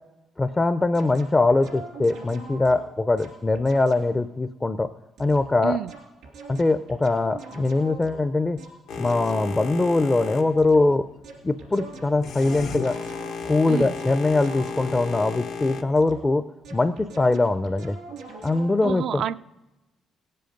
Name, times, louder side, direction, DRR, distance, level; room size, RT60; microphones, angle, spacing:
voice 1, 0.4-4.9 5.2-5.8 6.5-8.6 9.0-11.1 11.4-13.0 13.5-16.4 16.7-18.0 18.4-19.2, left 2 dB, 20° left, 10 dB, 0.4 m, -22 dB
sound 1, 0.9-4.2 5.2-9.7 10.6-11.0 11.2-15.1 16.0-18.8, right 3 dB, 90° right, 2.7 m, -43 dB
Boat Water vehicle, 8.9-15.8, left 5 dB, 85° left, 1.0 m, -35 dB
voice 2, 18.8-19.4, right 9 dB, 70° right, 14 dB, 0.3 m, -28 dB
17.5 x 7.7 x 5.2 m, 1.0 s
cardioid pair, 90°, 0 cm